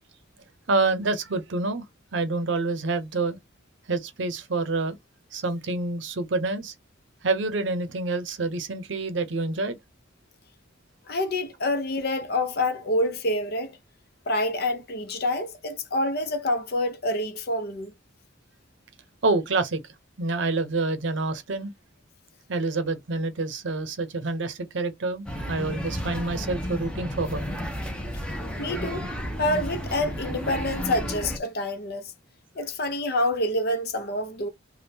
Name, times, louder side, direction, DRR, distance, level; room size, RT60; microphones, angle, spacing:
voice 1, 0.7-1.8 2.1-3.4 3.9-5.0 5.3-6.7 7.2-9.8 19.2-19.8 20.2-21.7 22.5-27.5, right 3 dB, 65° right, 0.7 m, -27 dB
voice 2, 11.1-13.8 14.3-17.9 28.6-29.0 29.4-32.1 32.5-34.5, left 1 dB, 50° left, 0.7 m, -27 dB
sound 1, 25.3-31.4, equal, 5° left, 0.7 m, -32 dB
3.5 x 2.3 x 2.8 m
head